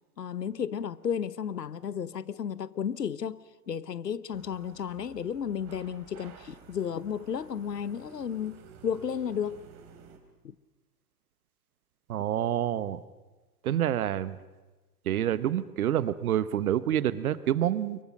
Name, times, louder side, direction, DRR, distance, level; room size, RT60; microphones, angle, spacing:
voice 1, 0.2-9.7 10.4-10.5, left 8 dB, 80° left, 0.9 m, -33 dB
sound 1, 4.3-10.2, right 6 dB, 35° right, 3.9 m, -53 dB
voice 2, 12.1-13.0 13.6-14.4 15.1-18.0, right 11 dB, 60° right, 1.2 m, -27 dB
24.0 x 23.0 x 6.5 m
figure-of-eight pair, 100°, 48 cm